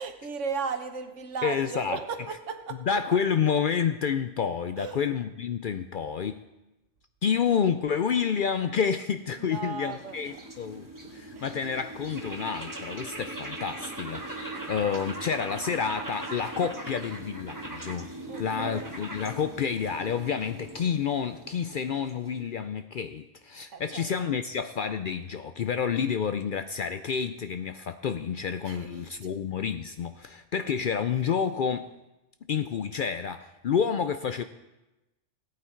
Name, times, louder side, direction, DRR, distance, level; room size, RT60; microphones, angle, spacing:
voice 1, 0.0-3.0 4.8-5.0 9.4-10.4 11.3-11.5 18.3-19.0 23.7-24.1 28.6-29.0, right 5 dB, 75° right, 7 dB, 1.4 m, -36 dB
voice 2, 1.4-2.0 2.9-6.4 7.2-18.1 18.4-31.9 32.5-34.4, left 7 dB, 60° left, 10 dB, 0.5 m, -29 dB
sound 1, 9.2-22.5, right 2 dB, 15° right, 1.4 m, -40 dB
17.5 x 8.7 x 4.5 m, 1.0 s
omnidirectional pair, 1.3 m